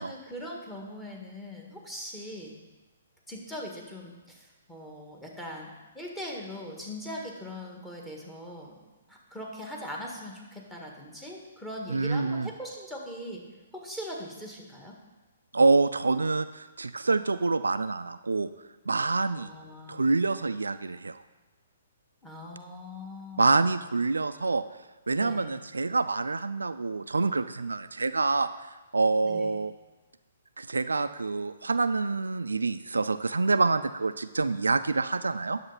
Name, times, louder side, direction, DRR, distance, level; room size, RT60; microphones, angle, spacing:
voice 1, 0.0-2.5 3.3-5.7 5.9-8.7 9.1-13.4 13.7-14.9 19.4-20.1 22.2-23.6 25.2-25.5 29.2-29.5, equal, 10° left, -1 dB, 1.8 m, -41 dB
voice 2, 11.9-12.5 15.5-18.5 18.9-19.5 19.9-21.2 23.4-24.6 25.1-29.7 30.6-35.6, right 3 dB, 75° right, 11 dB, 0.3 m, -26 dB
10.0 x 6.9 x 4.1 m, 1.2 s
figure-of-eight pair, 125°, 0 cm